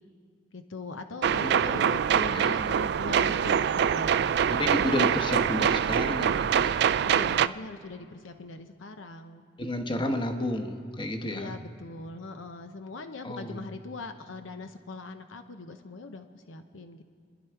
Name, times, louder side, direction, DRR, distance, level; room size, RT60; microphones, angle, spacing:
voice 1, 0.5-4.1 7.0-9.5 11.2-17.0, left 3 dB, 90° left, 7 dB, 0.7 m, -41 dB
sound 1, 1.2-7.5, right 8 dB, 60° right, 0.3 m, -24 dB
voice 2, 1.4-1.8 2.3-2.6 4.5-6.8 9.6-11.6 13.2-13.7, left 1 dB, 25° left, 5 dB, 1.0 m, -31 dB
29.5 x 10.5 x 4.6 m, 2.1 s
head